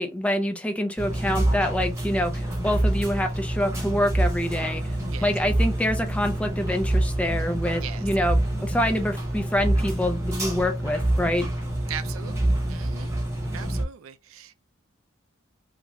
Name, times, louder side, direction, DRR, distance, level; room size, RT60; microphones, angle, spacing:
voice 1, 0.0-4.8 5.2-11.5, left 1 dB, 5° left, 0.5 m, -26 dB
sound 1, 1.0-13.8, right 1 dB, 15° right, 1.1 m, -26 dB
voice 2, 11.9-13.1 13.5-14.5, right 9 dB, 85° right, 0.4 m, -39 dB
3.1 x 2.5 x 3.5 m
head